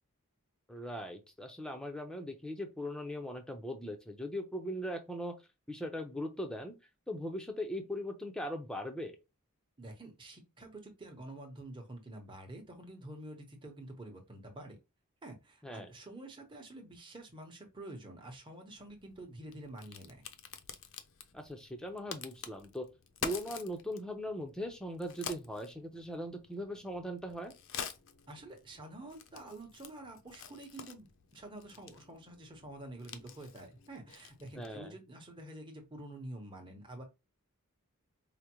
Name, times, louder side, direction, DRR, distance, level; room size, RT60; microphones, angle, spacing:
voice 1, 0.7-5.3 5.7-6.8 7.1-9.2 15.6-15.9 21.3-22.9 23.2-27.5 34.6-34.9, equal, 5° left, 0.6 m, -39 dB
voice 2, 9.8-14.8 15.2-20.2 28.3-37.0, right 1 dB, 20° right, 0.9 m, -48 dB
Crack, 18.8-34.9, left 7 dB, 60° left, 0.5 m, -48 dB
4.9 x 2.1 x 2.9 m
head